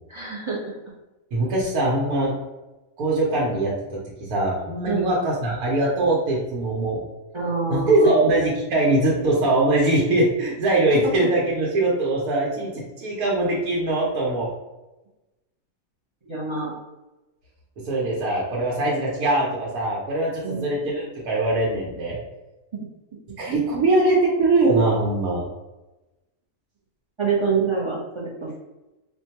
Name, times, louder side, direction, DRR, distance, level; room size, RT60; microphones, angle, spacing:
voice 1, 0.1-0.7 4.9-5.1 7.3-8.2 11.2-11.3 16.3-16.7 20.4-20.7 27.2-28.5, right 4 dB, 40° right, -5 dB, 0.4 m, -26 dB
voice 2, 1.3-2.3 3.0-7.0 7.7-14.5 17.8-22.2 23.4-25.4, right 2 dB, 85° right, -4 dB, 1.2 m, -22 dB
4.3 x 2.2 x 2.8 m, 1.1 s
omnidirectional pair, 1.5 m